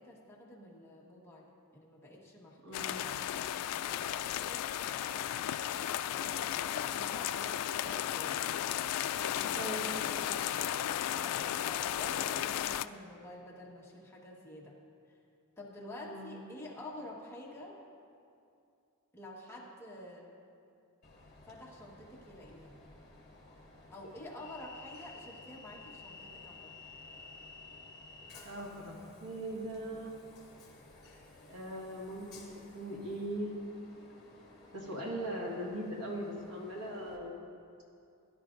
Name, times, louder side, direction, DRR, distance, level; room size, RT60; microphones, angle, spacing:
voice 1, 0.0-3.2 3.7-8.5 9.0-10.5 11.1-14.7 15.6-17.8 19.1-20.3 21.4-22.8 23.9-26.7, left 1 dB, 10° left, -4 dB, 1.4 m, -49 dB
voice 2, 2.6-3.0 9.5-10.0 12.2-12.4 16.0-16.4 28.4-30.1 31.5-32.5 32.7-33.5 34.7-37.4, right 1 dB, 90° right, -1 dB, 1.8 m, -40 dB
sound 1, 2.7-12.9, left 11 dB, 85° left, 0.3 m, -34 dB
Train, 21.0-37.2, left 3 dB, 50° left, 3.0 m, -54 dB
16.5 x 11.5 x 2.6 m, 2.5 s
head